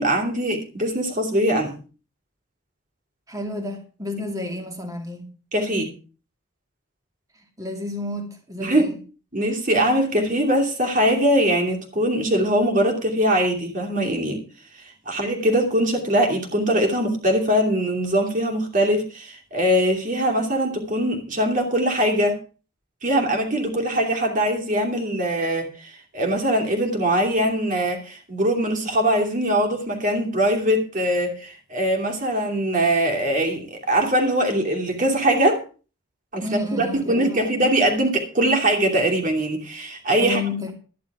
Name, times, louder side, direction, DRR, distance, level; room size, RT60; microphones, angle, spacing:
voice 1, 0.0-1.8 5.5-5.9 8.6-8.9 9.3-14.4 15.1-22.4 23.0-35.6 36.3-36.4 36.7-40.4, right 1 dB, 40° right, 2.7 m, -22 dB
voice 2, 3.3-5.3 7.4-8.9 36.4-37.4 40.2-40.8, left 2 dB, 15° right, 2.4 m, -31 dB
12.5 x 10.5 x 4.8 m
head